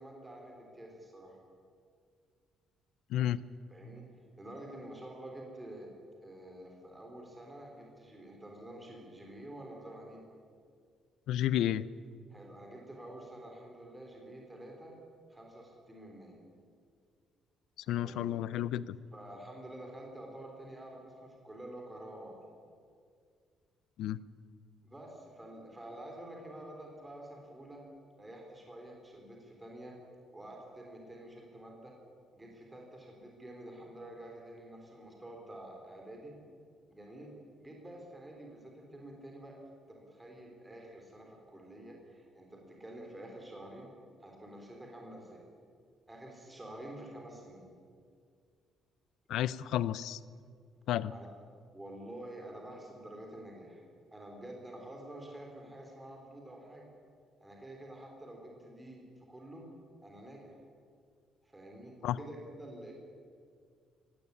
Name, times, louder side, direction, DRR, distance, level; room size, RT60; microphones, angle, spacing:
voice 1, 0.0-1.4 3.7-4.0 4.4-5.9 6.2-10.2 12.3-14.9 15.3-16.4 18.0-18.4 19.1-22.4 24.8-27.8 28.2-30.0 30.3-31.9 32.3-36.3 36.9-37.3 37.6-39.5 39.9-43.9 44.2-45.4 46.1-47.7 51.1-51.3 51.7-53.8 54.1-56.9 57.4-59.7 60.0-60.6 61.4-62.9, right 1 dB, 10° right, 0 dB, 3.6 m, -48 dB
voice 2, 3.1-3.4 11.3-11.9 17.9-19.0 24.0-24.2 49.3-50.2 50.9-51.1 62.0-62.2, left 12 dB, 75° left, 18 dB, 0.6 m, -31 dB
17.5 x 16.5 x 9.9 m, 2.1 s
cardioid pair, 165°, 0 cm